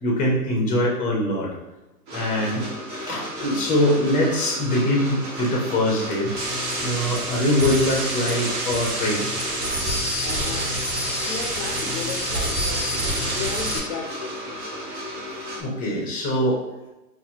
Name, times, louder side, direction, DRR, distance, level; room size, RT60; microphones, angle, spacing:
voice 1, 0.0-1.5 2.1-2.6 3.0-6.3 6.8-9.2 15.6-16.6, left 1 dB, 15° left, -2 dB, 0.9 m, -23 dB
sound 1, 2.1-15.6, equal, 30° right, 0.9 m, -35 dB
sound 2, 6.4-13.8, right 1 dB, 75° right, 1.3 m, -27 dB
voice 2, 10.2-10.8 11.2-12.9 13.3-14.6, left 6 dB, 40° left, 4 dB, 0.6 m, -34 dB
4.2 x 2.7 x 2.9 m, 1.0 s
hypercardioid pair, 135°, 47 cm